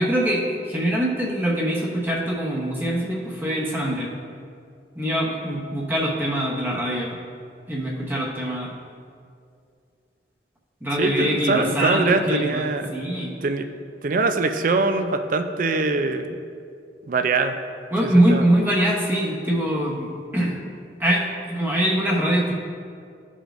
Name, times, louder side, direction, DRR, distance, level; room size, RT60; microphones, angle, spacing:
voice 1, 0.0-4.1 4.9-7.2 7.7-8.7 10.8-12.6 12.9-13.3 17.9-20.6 21.0-22.5, right 1 dB, 10° right, -4 dB, 0.9 m, -23 dB
voice 2, 11.0-12.9 13.4-13.7 14.0-16.3 17.1-17.5 18.0-18.4, right 3 dB, 50° right, 7 dB, 0.4 m, -23 dB
13.0 x 5.0 x 2.5 m, 2.3 s
head